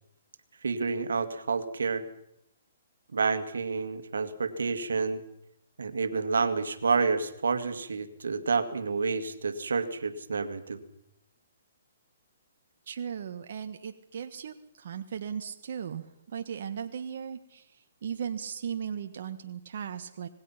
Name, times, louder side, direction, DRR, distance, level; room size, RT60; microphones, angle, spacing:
voice 1, 0.6-2.0 3.1-5.2 5.8-10.8, right 4 dB, 85° right, 10 dB, 2.2 m, -29 dB
voice 2, 12.9-20.3, right 8 dB, 60° right, 7 dB, 1.4 m, -37 dB
26.0 x 20.0 x 5.9 m, 0.78 s
hypercardioid pair, 150°, 0 cm